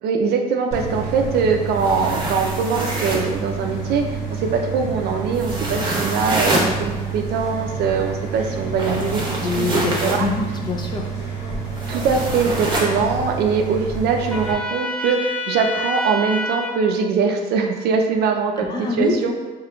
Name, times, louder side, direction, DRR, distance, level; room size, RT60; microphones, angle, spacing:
voice 1, 0.0-9.7 10.0-10.3 11.9-19.3, right 5 dB, 70° right, 4 dB, 0.4 m, -22 dB
sound 1, 0.7-14.5, right 4 dB, 45° left, 1.0 m, -29 dB
Strokes over Blanket, 1.7-3.3 5.3-6.7 8.7-10.2 11.8-12.9, right 1 dB, 25° right, 0.8 m, -26 dB
voice 2, 9.4-11.1 18.6-19.3, left 3 dB, 25° left, 0 dB, 0.5 m, -25 dB
Trumpet, 14.3-16.8, left 2 dB, 5° left, 1.1 m, -27 dB
3.6 x 2.9 x 2.2 m, 1.3 s
cardioid pair, 110°, 17 cm